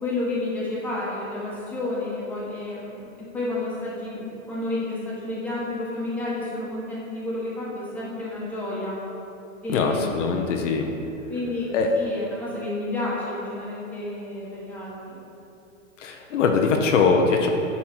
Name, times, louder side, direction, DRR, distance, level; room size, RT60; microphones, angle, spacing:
voice 1, 0.0-9.0 9.6-10.4 11.3-15.2, left 2 dB, 5° left, -7 dB, 1.3 m, -31 dB
voice 2, 9.7-10.9 11.7-11.9 16.0-17.5, left 5 dB, 65° left, 3 dB, 0.9 m, -22 dB
8.7 x 4.2 x 6.0 m, 2.9 s
hypercardioid pair, 160°, 39 cm